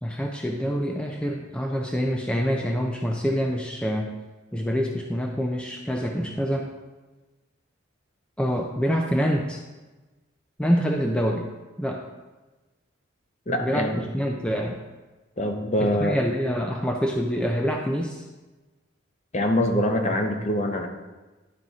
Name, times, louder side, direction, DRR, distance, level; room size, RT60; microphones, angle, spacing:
voice 1, 0.0-4.1 4.5-6.7 8.4-9.6 10.6-11.5 11.8-12.0 13.6-14.8 15.8-18.3, equal, 5° left, 1 dB, 0.5 m, -26 dB
voice 2, 13.5-14.1 15.4-16.2 19.3-20.9, left 1 dB, 35° left, 4 dB, 0.8 m, -24 dB
10.5 x 4.9 x 4.1 m, 1.2 s
head